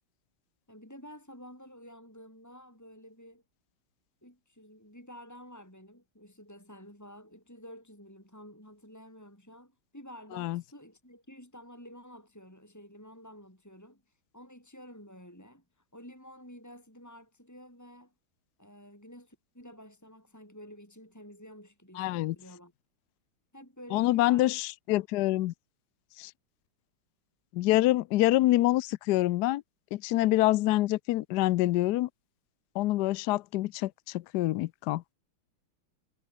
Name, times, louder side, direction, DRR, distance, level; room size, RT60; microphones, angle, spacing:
voice 1, 0.7-3.4 4.2-18.1 18.6-22.7 23.5-24.5, equal, 5° left, 5.9 m, -50 dB
voice 2, 22.0-22.4 23.9-25.5 26.2-26.3 27.5-29.6 29.9-32.1 32.7-35.0, left 16 dB, 75° left, 0.9 m, -26 dB
omnidirectional pair, 2.3 m